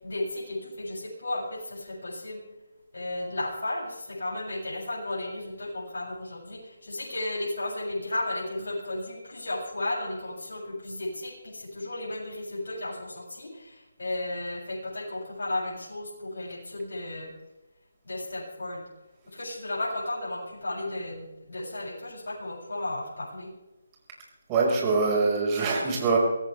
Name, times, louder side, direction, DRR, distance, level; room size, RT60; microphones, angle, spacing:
voice 1, 0.0-2.4 2.9-17.3 18.0-18.8 19.3-23.5, left 1 dB, 70° left, -5 dB, 7.8 m, -34 dB
voice 2, 24.5-26.2, right 4 dB, 20° right, -2 dB, 5.5 m, -24 dB
24.0 x 17.0 x 3.5 m, 1.0 s
figure-of-eight pair, 155°, 0 cm